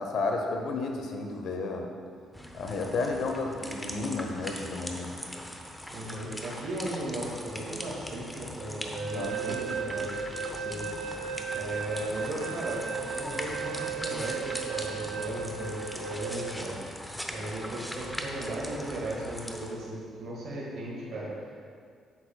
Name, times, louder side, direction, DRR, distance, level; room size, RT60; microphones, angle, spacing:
voice 1, 0.0-1.9 2.5-5.1 9.1-9.3, left 3 dB, 75° left, 3 dB, 0.8 m, -32 dB
sound 1, 2.3-19.7, equal, 5° left, 0.7 m, -40 dB
voice 2, 5.9-10.1 10.5-10.8 11.5-21.7, right 1 dB, 65° right, -6 dB, 1.6 m, -36 dB
sound 2, 8.9-16.6, right 6 dB, 90° right, 0.4 m, -36 dB
8.5 x 6.9 x 2.3 m, 2.1 s
cardioid pair, 90°, 0 cm